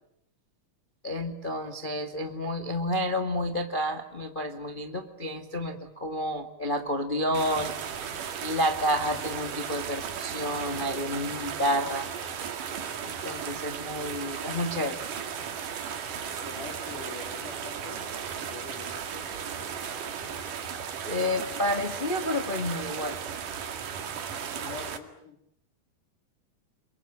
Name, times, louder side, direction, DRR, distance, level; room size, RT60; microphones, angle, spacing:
voice 1, 1.0-7.7 8.4-12.1 13.0-15.0 21.0-23.2, equal, 25° left, 5 dB, 1.2 m, -30 dB
sound 1, 7.3-25.0, right 7 dB, 60° right, 3.6 m, -36 dB
voice 2, 16.4-18.2 18.5-19.3 24.6-25.4, left 3 dB, 60° left, 4 dB, 4.4 m, -43 dB
28.5 x 23.0 x 8.8 m, 0.75 s
omnidirectional pair, 4.3 m